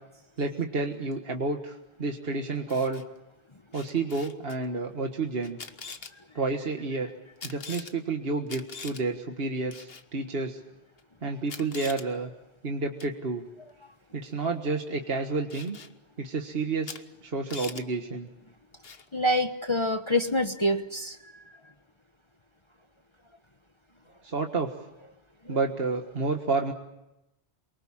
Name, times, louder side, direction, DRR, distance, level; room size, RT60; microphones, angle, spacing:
voice 1, 0.4-3.0 3.7-5.6 6.4-7.1 7.4-10.6 11.2-12.3 12.6-13.4 14.1-15.8 16.2-18.3 24.2-24.7 25.5-26.7, right 3 dB, 60° right, 3 dB, 1.8 m, -30 dB
Camera, 2.5-3.0 3.7-4.6 5.4-6.1 7.4-7.9 8.5-9.0 9.7-10.0 11.0-11.1 11.5-12.1 13.0-13.2 15.5-15.9 16.8-17.0 17.3-17.8 18.8-19.1, left 5 dB, 65° left, 1.5 m, -42 dB
voice 2, 19.1-21.4 25.4-25.6, left 1 dB, 25° left, 6 dB, 1.2 m, -27 dB
28.5 x 24.0 x 7.3 m, 0.95 s
omnidirectional pair, 1.1 m